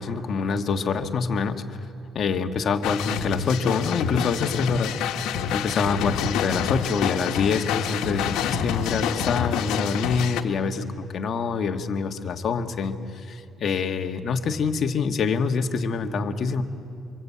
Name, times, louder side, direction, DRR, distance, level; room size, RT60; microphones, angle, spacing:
voice 1, 0.0-1.8 2.1-16.6, left 5 dB, 45° left, 5 dB, 1.6 m, -26 dB
sound 1, 2.8-10.4, left 8 dB, 90° left, 1.3 m, -27 dB
27.0 x 25.5 x 8.5 m, 2.4 s
cardioid pair, 125°, 0 cm